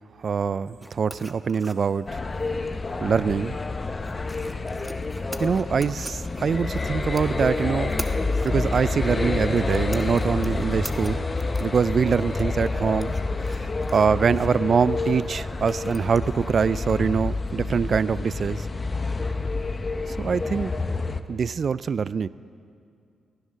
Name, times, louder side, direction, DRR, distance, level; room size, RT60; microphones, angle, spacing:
voice 1, 0.2-2.2 3.0-3.6 5.4-8.0 8.4-11.3 11.6-13.2 13.5-13.6 13.9-18.7 20.1-20.7 21.3-22.3, right 6 dB, 55° right, 17 dB, 0.3 m, -24 dB
sound 1, 0.8-17.2, equal, 5° right, 1.2 m, -45 dB
sound 2, 2.1-21.2, left 3 dB, 35° left, 0.8 m, -28 dB
18.0 x 11.5 x 6.3 m, 2.4 s
supercardioid pair, 45°, 0 cm